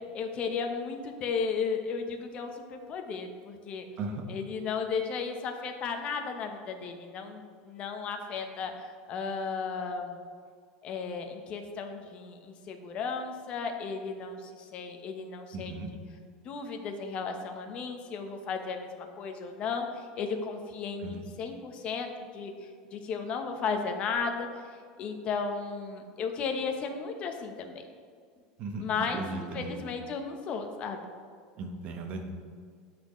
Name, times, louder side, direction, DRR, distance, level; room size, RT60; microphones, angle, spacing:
voice 1, 0.1-3.8 4.3-10.2 10.8-15.7 16.4-24.7 25.0-27.8 28.8-31.0, left 5 dB, 40° left, 5 dB, 0.9 m, -35 dB
voice 2, 15.5-15.9 21.0-21.3 28.6-28.9 29.1-29.8 31.6-32.3, right 3 dB, 45° right, 4 dB, 1.1 m, -37 dB
13.0 x 4.4 x 3.1 m, 2.1 s
supercardioid pair, 140°, 3 cm